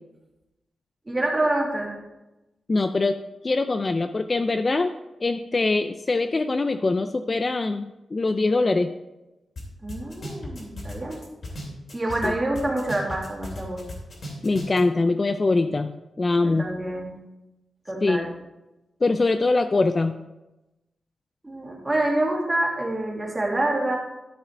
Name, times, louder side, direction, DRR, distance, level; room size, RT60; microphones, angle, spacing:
voice 1, 1.1-2.0 9.8-11.2 11.9-13.8 16.4-17.1 17.9-18.3 21.4-24.0, right 1 dB, 15° right, -2 dB, 2.0 m, -26 dB
voice 2, 2.7-3.2 3.4-4.9 5.2-8.9 12.2-12.3 14.4-15.9 16.2-16.7 18.0-18.3 19.0-20.2, left 3 dB, 25° left, 8 dB, 0.3 m, -23 dB
sound 1, 9.6-9.7 9.9-12.3 12.6-14.8, left 1 dB, 50° left, 2.7 m, -36 dB
12.5 x 4.8 x 4.4 m, 1.0 s
wide cardioid pair, 160°, 0 cm